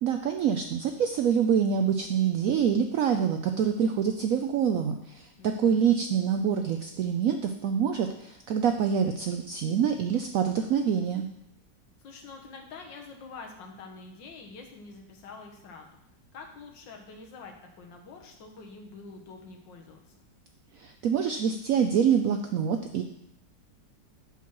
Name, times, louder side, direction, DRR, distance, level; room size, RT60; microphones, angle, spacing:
voice 1, 0.0-11.3 20.7-23.0, right 7 dB, 80° right, 6 dB, 0.7 m, -26 dB
voice 2, 5.4-5.9 12.0-15.9 16.3-20.3, left 4 dB, 80° left, 3 dB, 1.8 m, -46 dB
7.1 x 4.6 x 5.9 m, 0.80 s
omnidirectional pair, 2.0 m